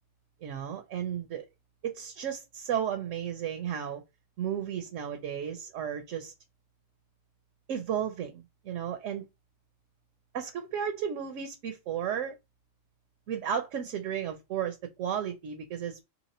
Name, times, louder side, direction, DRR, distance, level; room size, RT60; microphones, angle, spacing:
voice 1, 0.4-1.5 1.8-4.0 4.4-6.3 7.7-9.2 10.3-12.4 13.3-16.0, right 9 dB, 75° right, 1.0 m, -34 dB
2.9 x 2.9 x 4.1 m
omnidirectional pair, 1.3 m